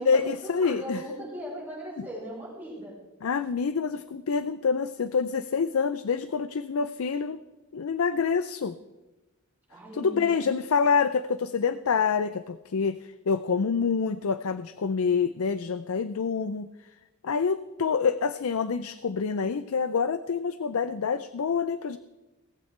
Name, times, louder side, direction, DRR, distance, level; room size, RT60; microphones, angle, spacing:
voice 1, 0.0-1.0 3.2-7.4 7.7-8.8 9.9-16.7 17.2-22.0, left 5 dB, 75° left, 13 dB, 0.5 m, -27 dB
voice 2, 0.6-3.0 9.7-10.5, equal, 10° right, -6 dB, 5.0 m, -38 dB
18.0 x 14.5 x 3.3 m, 1.1 s
head